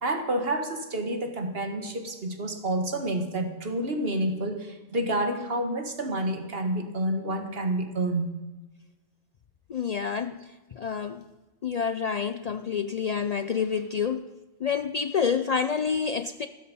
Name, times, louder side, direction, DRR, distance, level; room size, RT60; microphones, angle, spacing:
voice 1, 0.0-8.3, right 1 dB, 50° right, 6 dB, 1.9 m, -29 dB
voice 2, 9.7-11.2 11.6-14.3 14.6-16.5, left 6 dB, 75° left, 11 dB, 0.3 m, -28 dB
14.5 x 12.5 x 5.5 m, 1.2 s
omnidirectional pair, 1.3 m